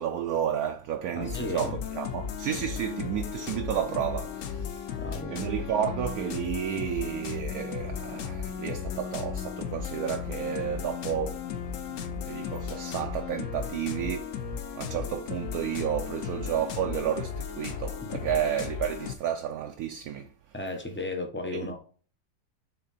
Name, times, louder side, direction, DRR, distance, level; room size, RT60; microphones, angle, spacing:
voice 1, 0.0-5.0 5.3-11.5 11.9-14.4 14.8-20.3 21.5-21.8, right 9 dB, 70° right, 0.9 m, -32 dB
voice 2, 1.1-1.7 5.0-5.5 18.0-18.3 20.5-21.8, left 2 dB, 15° left, 0.4 m, -35 dB
sound 1, 1.2-19.2, left 7 dB, 65° left, 0.8 m, -35 dB
6.7 x 3.7 x 4.1 m
omnidirectional pair, 1.8 m